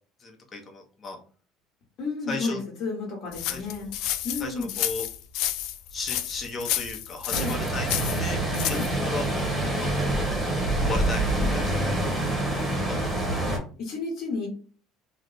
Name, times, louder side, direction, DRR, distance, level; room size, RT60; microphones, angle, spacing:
voice 1, 0.2-1.2 2.3-2.6 3.5-3.9 4.4-5.1 5.9-8.4 8.7-9.5 9.8-12.0 12.9-13.1, left 3 dB, 20° left, 1 dB, 0.7 m, -36 dB
voice 2, 2.0-3.9 4.2-4.7 7.3-7.5 8.7-8.9 12.9-13.0 13.8-14.5, left 4 dB, 45° left, -3 dB, 1.1 m, -32 dB
sound 1, 3.3-8.9, left 12 dB, 60° left, 0.3 m, -30 dB
sound 2, 7.3-13.6, right 1 dB, 10° right, 1.0 m, -26 dB
3.1 x 2.0 x 3.9 m, 0.40 s
cardioid pair, 170°, 0 cm